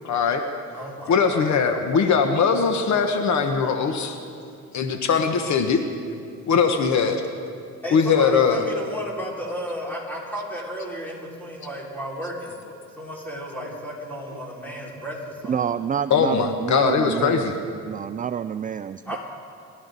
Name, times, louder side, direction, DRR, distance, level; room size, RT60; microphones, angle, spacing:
voice 1, 0.0-0.4 1.1-4.2 4.7-5.8 6.4-7.2 7.9-8.6 16.1-17.5, left 6 dB, 65° left, 6 dB, 1.2 m, -20 dB
voice 2, 0.7-1.5 7.8-12.6 13.0-15.6 19.1-19.2, equal, 5° left, -5 dB, 5.0 m, -33 dB
voice 3, 15.5-17.4 17.8-19.2, right 8 dB, 30° right, 12 dB, 0.4 m, -28 dB
29.5 x 12.0 x 4.0 m, 2.4 s
cardioid pair, 90°, 30 cm